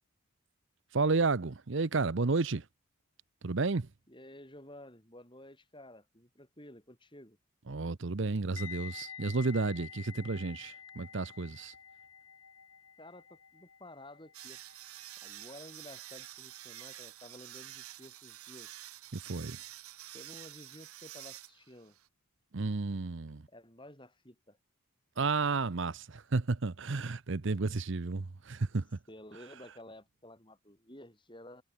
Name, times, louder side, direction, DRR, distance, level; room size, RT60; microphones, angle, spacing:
voice 1, 0.9-2.6 3.4-3.9 7.7-11.7 19.1-19.6 22.5-23.4 25.2-28.9, right 3 dB, 55° right, 0.7 m, -32 dB
voice 2, 4.1-7.4 13.0-14.6 15.2-18.9 19.8-22.0 23.5-24.6 29.1-31.6, left 1 dB, 20° left, 7.9 m, -53 dB
sound 1, 8.6-17.5 17.8-18.1, left 8 dB, 75° left, 7.4 m, -50 dB
Angle Grinder Cutting, 14.3-22.1, right 14 dB, 85° right, 1.3 m, -49 dB
head